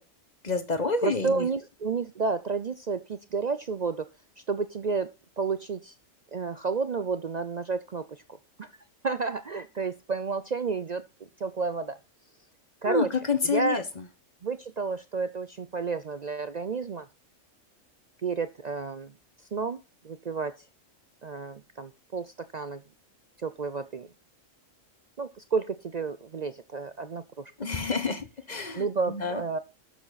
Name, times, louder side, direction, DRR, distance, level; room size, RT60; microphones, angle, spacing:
voice 1, 0.4-1.5 12.9-13.8 27.6-29.4, left 4 dB, 35° left, 10 dB, 1.2 m, -28 dB
voice 2, 1.0-4.1 4.5-5.1 5.4-5.9 6.3-8.2 8.6-8.7 9.0-11.0 11.4-12.0 12.8-13.1 13.4-13.8 14.4-17.1 18.2-19.1 19.5-19.8 20.0-20.5 21.2-22.8 23.4-24.1 25.2-27.5 27.9-28.0 28.7-29.6, right 4 dB, 50° right, 12 dB, 0.5 m, -31 dB
12.0 x 7.1 x 4.1 m, 0.29 s
omnidirectional pair, 1.4 m